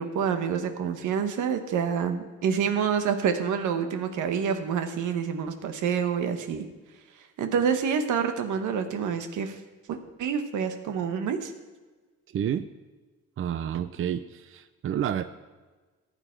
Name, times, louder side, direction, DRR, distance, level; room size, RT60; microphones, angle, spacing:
voice 1, 0.0-6.6 7.4-9.6 9.9-11.5, right 7 dB, 80° right, 8 dB, 1.2 m, -27 dB
voice 2, 12.3-12.7 13.4-15.2, right 9 dB, 45° right, 12 dB, 0.5 m, -29 dB
14.5 x 9.0 x 4.5 m, 1.3 s
cardioid pair, 90°, 30 cm